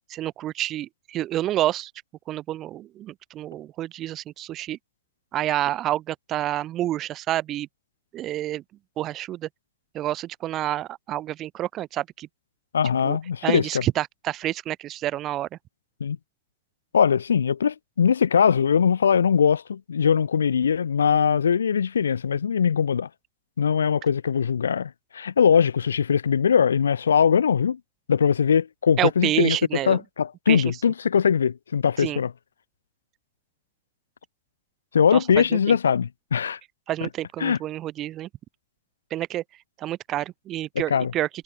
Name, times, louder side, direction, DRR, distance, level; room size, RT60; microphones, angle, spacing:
voice 1, 0.1-1.9 2.3-4.8 5.3-7.7 8.1-8.6 9.0-9.5 9.9-12.3 13.0-13.2 13.4-15.5 29.0-30.0 30.5-30.6 32.0-32.2 35.1-35.8 36.9-38.3 39.1-39.4 39.8-41.3, right 13 dB, 35° right, 2.7 m, -28 dB
voice 2, 12.7-13.8 16.0-16.2 16.9-23.1 23.6-27.8 28.1-29.6 29.9-32.3 34.9-36.6 37.4-37.6 40.9-41.1, left 7 dB, 70° left, 1.7 m, -21 dB
figure-of-eight pair, 90°, 0 cm